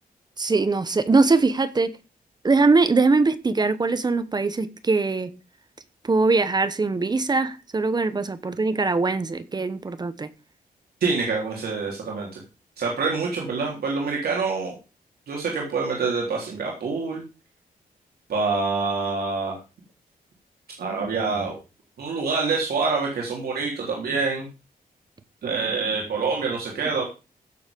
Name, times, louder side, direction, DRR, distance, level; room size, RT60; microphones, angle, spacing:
voice 1, 0.4-1.9 2.4-5.3 6.0-10.3, right 3 dB, 25° right, 13 dB, 1.0 m, -21 dB
voice 2, 11.0-12.4 12.8-14.8 15.3-17.2 18.3-19.6 20.8-21.6 22.0-24.5 25.4-27.0, right 4 dB, 85° right, -2 dB, 3.5 m, -26 dB
16.0 x 7.1 x 5.2 m, 0.32 s
wide cardioid pair, 155°, 16 cm